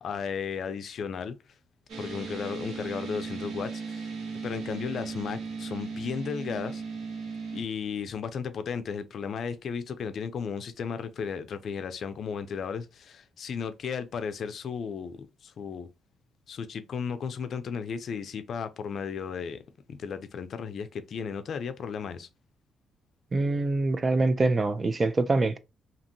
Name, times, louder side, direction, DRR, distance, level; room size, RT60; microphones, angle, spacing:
voice 1, 0.0-1.4 2.0-4.1 4.4-6.8 7.5-15.9 16.5-19.6 19.9-22.3, left 6 dB, 60° left, 0.4 m, -34 dB
sound 1, 1.9-7.6, right 4 dB, 80° right, 1.3 m, -37 dB
voice 2, 23.3-25.6, right 3 dB, 30° right, 0.3 m, -25 dB
2.8 x 2.6 x 2.6 m
cardioid pair, 90°, 0 cm